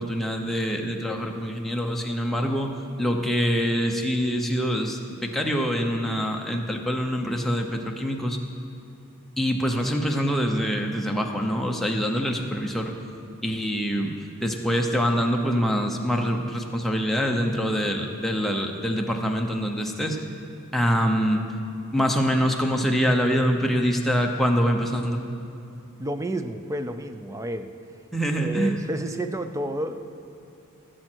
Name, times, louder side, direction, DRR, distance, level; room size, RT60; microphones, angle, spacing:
voice 1, 0.0-2.7 3.0-8.4 9.4-12.9 13.4-14.1 14.4-20.2 20.7-21.4 21.8-25.2 28.1-28.8, equal, ahead, 1 dB, 0.8 m, -25 dB
voice 2, 26.0-27.7 28.4-30.1, right 1 dB, 15° right, 9 dB, 0.4 m, -30 dB
19.0 x 7.6 x 4.5 m, 2.7 s
head